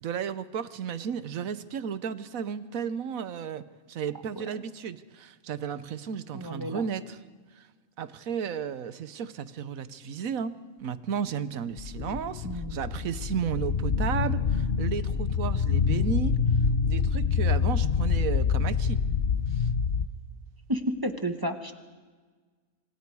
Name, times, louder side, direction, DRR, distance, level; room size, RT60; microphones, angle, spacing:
voice 1, 0.0-7.2 7.5-7.7 8.0-16.4 16.9-19.0 19.5-19.7, right 7 dB, 85° right, 14 dB, 1.3 m, -33 dB
voice 2, 6.3-6.8 12.4-12.8 20.7-21.7, equal, 15° right, 7 dB, 1.2 m, -31 dB
sound 1, 11.8-20.1, left 6 dB, 50° left, 0.9 m, -26 dB
27.0 x 26.0 x 4.8 m, 1.4 s
omnidirectional pair, 1.4 m